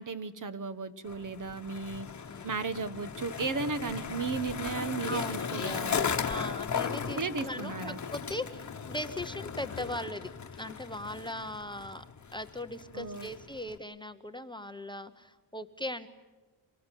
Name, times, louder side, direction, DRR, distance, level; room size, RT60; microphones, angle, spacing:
voice 1, 0.0-2.1 2.4-6.1 7.1-8.0 12.9-13.3, right 4 dB, 50° right, 12 dB, 1.3 m, -35 dB
Skateboard, 1.0-13.8, left 6 dB, 45° left, 1.4 m, -37 dB
voice 2, 5.0-10.3 10.6-12.0 12.3-16.1, left 1 dB, 10° left, 8 dB, 0.7 m, -39 dB
24.5 x 19.0 x 9.1 m, 1.2 s
wide cardioid pair, 170°, 41 cm